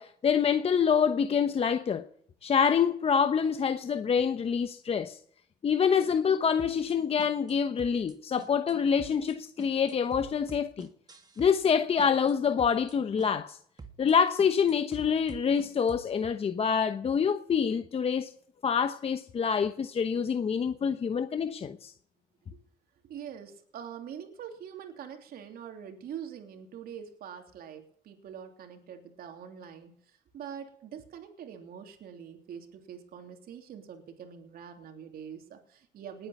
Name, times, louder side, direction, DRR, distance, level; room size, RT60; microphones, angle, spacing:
voice 1, 0.0-2.0 2.4-5.2 5.6-10.9 11.4-13.6 14.0-18.3 18.6-21.9, left 7 dB, 35° left, 1.0 m, -26 dB
sound 1, 6.6-6.9 7.2-7.5 7.8-8.1 8.4-8.7 9.0-9.3 9.6-11.7 12.0-12.3 12.6-12.9 13.2-13.5 13.8-14.1 14.4-16.1, right 4 dB, 25° right, 2.4 m, -47 dB
voice 2, 23.0-36.3, right 8 dB, 60° right, 3.1 m, -44 dB
19.5 x 9.3 x 7.3 m
cardioid pair, 110°, 17 cm